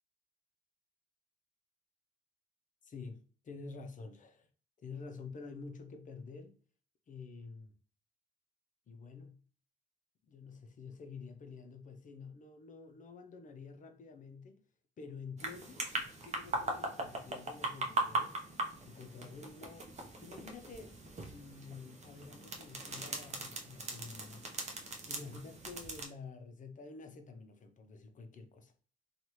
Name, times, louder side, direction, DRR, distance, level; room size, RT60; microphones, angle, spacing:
voice 1, 2.8-4.5 4.8-6.6 7.1-7.7 8.9-9.4 10.2-14.6 15.0-15.8 16.2-18.4 18.9-19.9 20.2-21.0 21.3-24.5 25.1-28.7, left 4 dB, 40° left, 0.5 m, -49 dB
sound 1, 15.4-26.0, right 2 dB, 35° right, 0.7 m, -40 dB
2.7 x 2.3 x 3.0 m
cardioid pair, 90°, 20 cm